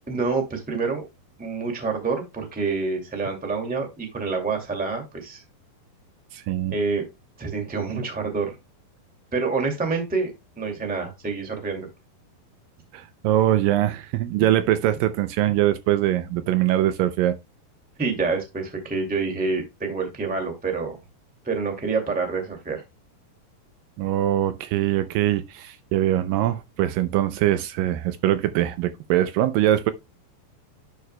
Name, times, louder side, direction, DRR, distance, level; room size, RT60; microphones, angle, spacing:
voice 1, 0.1-1.0 1.4-5.4 6.7-7.0 7.4-8.5 9.3-10.3 10.6-11.9 14.4-14.5 18.0-21.0 21.4-22.8, right 4 dB, 5° right, 1.1 m, -27 dB
voice 2, 6.3-6.7 12.9-17.4 24.0-29.9, right 13 dB, 80° right, 2.2 m, -22 dB
10.5 x 6.3 x 2.2 m
omnidirectional pair, 4.2 m